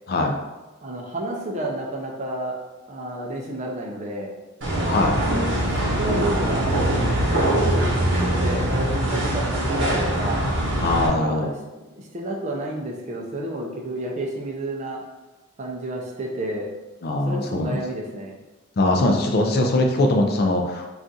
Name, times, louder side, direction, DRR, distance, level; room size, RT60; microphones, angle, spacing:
voice 1, 0.8-2.6 2.9-4.4 5.2-7.0 7.3-10.5 11.0-15.0 15.6-16.7 17.3-18.4, right 1 dB, 30° right, -1 dB, 0.4 m, -31 dB
sound 1, 4.6-11.1, right 1 dB, 55° right, 0.8 m, -22 dB
voice 2, 4.8-5.1 10.8-11.5 17.0-17.8 18.8-20.9, left 2 dB, 45° left, 2 dB, 0.4 m, -21 dB
2.4 x 2.4 x 3.9 m, 1.1 s
head